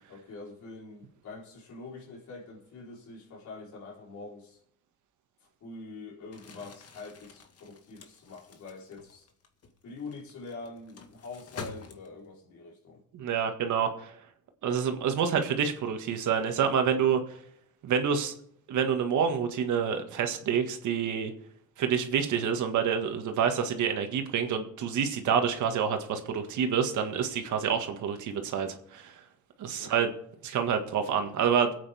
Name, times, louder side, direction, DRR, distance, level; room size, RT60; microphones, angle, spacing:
voice 1, 0.1-4.6 5.6-9.3 9.8-13.0 29.7-30.1, left 3 dB, 70° left, -2 dB, 3.9 m, -45 dB
Crumpling crinkling, 6.2-12.4, left 4 dB, 55° left, 1.6 m, -48 dB
voice 2, 13.1-14.1 14.6-17.4 17.8-18.3 18.7-21.3 21.8-29.2 29.6-30.1 30.4-31.7, right 7 dB, 75° right, 5 dB, 1.8 m, -28 dB
23.0 x 8.6 x 3.5 m, 0.70 s
cardioid pair, 90°, 30 cm